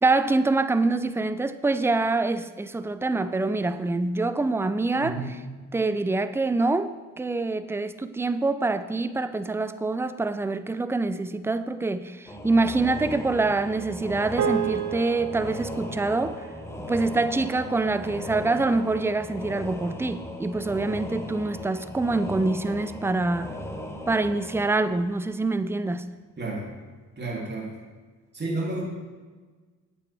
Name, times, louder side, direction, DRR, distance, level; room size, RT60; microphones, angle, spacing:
voice 1, 0.0-5.2 5.7-16.5 16.9-23.6 24.1-26.0, right 3 dB, 10° right, 0.3 m, -25 dB
voice 2, 5.0-5.3 26.4-26.7 27.2-27.7 28.3-28.8, right 2 dB, 35° right, 2.8 m, -31 dB
sound 1, 12.3-25.7, left 1 dB, 10° left, 1.0 m, -38 dB
sound 2, 14.4-18.9, right 9 dB, 70° right, 0.8 m, -34 dB
8.4 x 8.3 x 3.4 m
cardioid pair, 85°, 31 cm